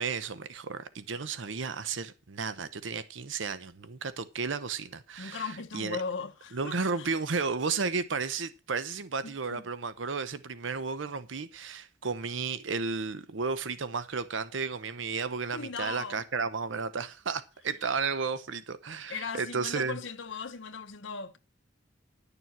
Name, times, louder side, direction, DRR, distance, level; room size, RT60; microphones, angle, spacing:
voice 1, 0.0-6.0 6.5-20.0, right 5 dB, 75° right, 0.8 m, -33 dB
voice 2, 5.2-7.1 9.2-9.6 15.5-16.2 19.1-21.4, left 5 dB, 80° left, 1.0 m, -38 dB
11.0 x 6.9 x 6.0 m
head